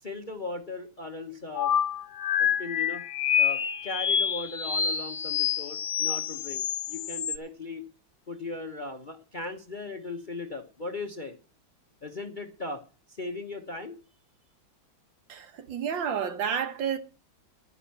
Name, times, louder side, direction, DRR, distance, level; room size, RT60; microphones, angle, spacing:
voice 1, 0.0-1.7 2.4-3.0 3.4-7.9 8.3-11.4 12.0-12.8 13.1-13.9, left 3 dB, 35° left, 0.9 m, -38 dB
sound 1, 1.6-7.4, left 8 dB, 80° left, 0.6 m, -27 dB
voice 2, 15.3-17.0, right 7 dB, 70° right, 1.8 m, -30 dB
11.0 x 10.0 x 5.7 m
omnidirectional pair, 2.2 m